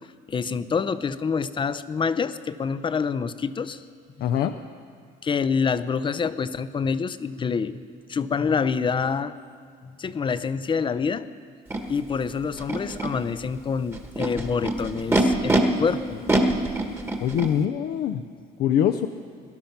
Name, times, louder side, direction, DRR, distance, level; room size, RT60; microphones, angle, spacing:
voice 1, 0.0-3.8 4.2-4.3 5.2-7.8 8.1-9.4 9.8-11.3 11.9-16.2, left 5 dB, 30° left, 14 dB, 0.6 m, -27 dB
voice 2, 4.2-4.5 17.2-18.2 18.6-19.1, left 9 dB, 70° left, 6 dB, 0.6 m, -23 dB
Animal, 11.7-11.8 12.6-13.1 13.9-15.6 16.3-17.5, right 2 dB, 15° right, 1.5 m, -24 dB
19.5 x 11.5 x 5.9 m, 2.1 s
cardioid pair, 110°, 17 cm